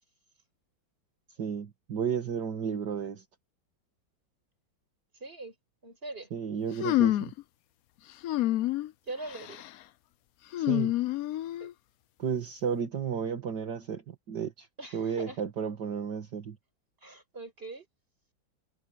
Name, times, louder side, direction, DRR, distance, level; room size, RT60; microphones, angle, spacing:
voice 1, 1.4-3.2 6.3-7.3 10.6-10.9 12.2-14.7 14.9-16.6, right 7 dB, 60° right, 2.3 m, -33 dB
voice 2, 5.2-5.5 5.8-6.3 9.1-9.6 11.6-11.7 14.8-15.4 17.0-17.9, right 2 dB, 25° right, 6.1 m, -41 dB
sound 1, 6.8-7.4 8.2-8.9 9.3-9.7 10.5-11.7, left 15 dB, 80° left, 0.8 m, -28 dB
omnidirectional pair, 2.2 m